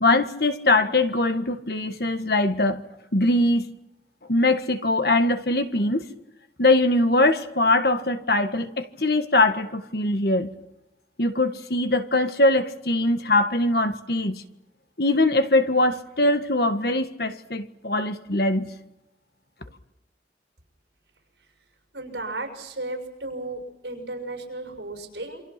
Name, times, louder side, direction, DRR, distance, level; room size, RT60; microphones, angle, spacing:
voice 1, 0.0-2.8 3.1-3.7 4.3-6.0 6.6-10.5 11.2-14.4 15.0-18.7, left 2 dB, 55° left, 1.7 m, -22 dB
voice 2, 21.9-25.4, right 2 dB, 75° right, 6.7 m, -34 dB
28.0 x 25.0 x 6.0 m
head